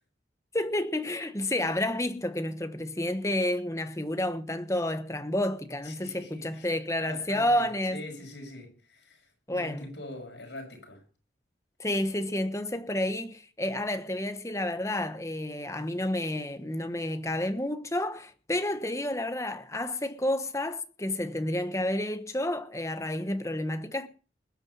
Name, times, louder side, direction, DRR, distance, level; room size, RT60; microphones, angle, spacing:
voice 1, 0.5-8.0 9.5-9.9 11.8-24.1, left 1 dB, 15° left, 1.2 m, -30 dB
voice 2, 5.8-6.7 7.0-11.0, left 1 dB, 70° left, 6.2 m, -44 dB
20.5 x 9.1 x 5.6 m
head